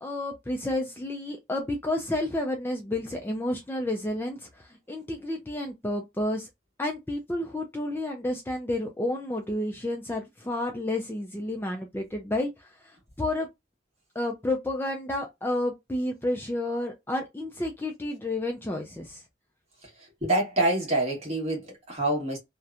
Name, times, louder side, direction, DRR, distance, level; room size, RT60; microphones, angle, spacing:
voice 1, 0.0-6.5 6.8-13.5 14.2-19.2, left 1 dB, 10° left, 0.3 m, -31 dB
voice 2, 20.2-22.4, right 1 dB, 35° right, 1.1 m, -26 dB
2.8 x 2.1 x 2.4 m
head